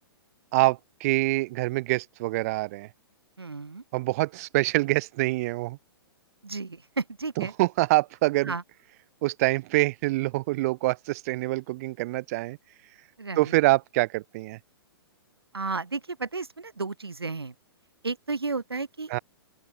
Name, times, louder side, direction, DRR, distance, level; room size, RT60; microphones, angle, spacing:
voice 1, 0.5-2.9 3.9-5.8 7.4-8.5 9.2-12.6 13.4-14.6 19.1-19.2, right 20 dB, 40° right, 1.7 m, -25 dB
voice 2, 3.4-3.8 6.4-7.5 8.4-8.6 13.2-13.5 15.5-17.5 18.0-19.1, right 4 dB, 75° right, 1.7 m, -33 dB
open air
figure-of-eight pair, 115°, 13 cm